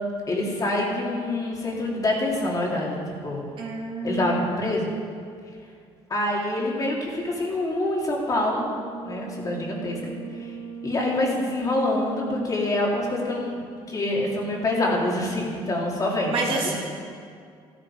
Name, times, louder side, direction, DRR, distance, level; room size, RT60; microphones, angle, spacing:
voice 1, 0.3-3.0 3.2-3.5 4.0-4.9 6.1-8.7 9.0-10.6 10.8-16.7, left 1 dB, 35° left, -3 dB, 3.3 m, -26 dB
voice 2, 3.6-4.7 16.3-16.8, right 3 dB, 50° right, -3 dB, 3.1 m, -29 dB
Brass instrument, 8.3-12.7, right 5 dB, 80° right, 2.5 m, -38 dB
14.0 x 13.5 x 5.1 m, 2.3 s
cardioid pair, 120°, 11 cm